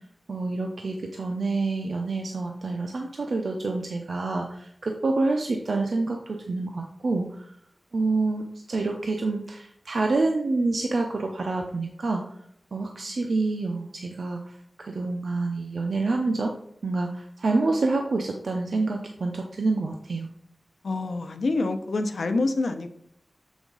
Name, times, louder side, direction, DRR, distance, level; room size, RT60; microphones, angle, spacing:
voice 1, 0.3-7.5 7.9-12.2 12.7-14.4 14.8-16.5 16.8-20.3, right 3 dB, 75° right, 2 dB, 0.6 m, -27 dB
voice 2, 20.8-22.9, left 3 dB, 85° left, 7 dB, 0.7 m, -26 dB
7.1 x 5.1 x 3.9 m, 0.70 s
wide cardioid pair, 70°, 0 cm